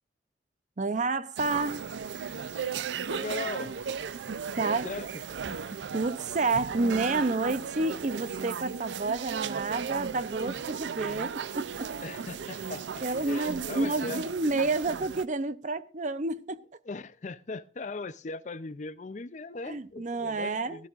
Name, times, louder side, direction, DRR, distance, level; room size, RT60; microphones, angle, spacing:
voice 1, 0.8-1.9 4.6-4.9 5.5-5.6 5.9-11.7 13.0-16.6 19.7-20.8, right 3 dB, 45° right, 0.6 m, -29 dB
sound 1, 1.4-15.2, right 6 dB, 85° right, 0.5 m, -36 dB
voice 2, 3.1-3.8 4.6-5.2 12.0-14.2 16.8-20.9, left 3 dB, 40° left, 0.5 m, -39 dB
18.0 x 13.0 x 2.5 m
head